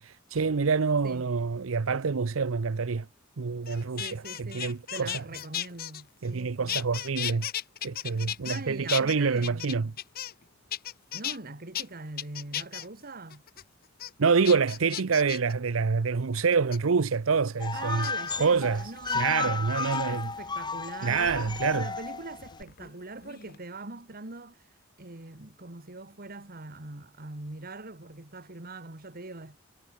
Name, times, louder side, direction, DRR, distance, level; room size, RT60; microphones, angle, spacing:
voice 1, 0.0-3.1 3.4-5.2 6.2-7.5 7.8-9.9 14.2-18.1 18.3-18.8 19.1-20.3 21.0-21.9, right 5 dB, 90° right, 0.7 m, -26 dB
sound 1, 3.7-6.4 6.7-8.6 8.9-10.4 10.7-11.4 11.7-11.8 12.2-12.9 13.3-13.6 14.0-14.1 14.4-15.5 16.4-16.8 18.0-18.3 19.0-19.2 19.8-20.3 21.7-22.9 23.2-23.6, left 11 dB, 50° left, 0.7 m, -36 dB
voice 2, 4.0-6.8 8.4-9.9 11.1-13.4 17.7-24.6 25.0-29.6, right 2 dB, 50° right, 2.2 m, -42 dB
sound 2, 17.6-22.6, left 4 dB, 20° left, 1.1 m, -33 dB
head